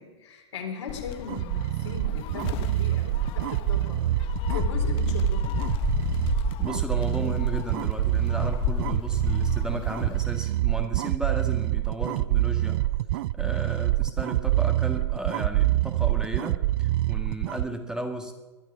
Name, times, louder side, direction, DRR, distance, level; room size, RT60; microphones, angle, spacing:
voice 1, 0.0-5.6, left 5 dB, 80° left, 1 dB, 4.2 m, -39 dB
Gull seagull, 0.9-10.2, left 11 dB, 40° left, 1.0 m, -32 dB
sound 1, 1.3-17.7, right 16 dB, 55° right, 0.4 m, -26 dB
voice 2, 6.6-12.8 13.4-18.3, right 1 dB, 5° right, 4 dB, 1.7 m, -34 dB
21.5 x 11.0 x 5.1 m, 1.2 s
hypercardioid pair, 110°, 15 cm